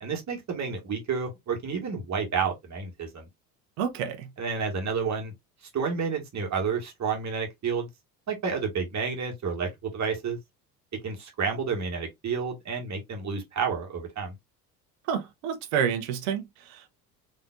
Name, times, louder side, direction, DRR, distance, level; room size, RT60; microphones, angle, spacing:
voice 1, 0.0-3.3 4.4-5.3 5.7-7.9 8.3-10.4 11.0-14.3, right 5 dB, 35° right, 1.7 m, -30 dB
voice 2, 3.8-4.3 15.1-16.9, right 8 dB, 60° right, 1.1 m, -29 dB
3.9 x 3.2 x 2.4 m
figure-of-eight pair, 60°, 46 cm